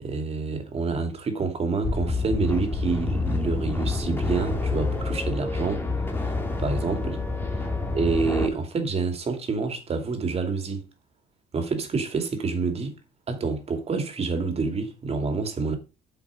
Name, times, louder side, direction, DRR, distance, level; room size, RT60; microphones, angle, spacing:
voice 1, 0.0-5.9 6.6-7.2 7.9-10.8 11.5-12.9 13.3-15.8, right 4 dB, 35° right, 2.7 m, -27 dB
sound 1, 1.8-8.5, left 3 dB, 15° left, 2.2 m, -27 dB
8.6 x 5.9 x 5.0 m
cardioid pair, 110°, 17 cm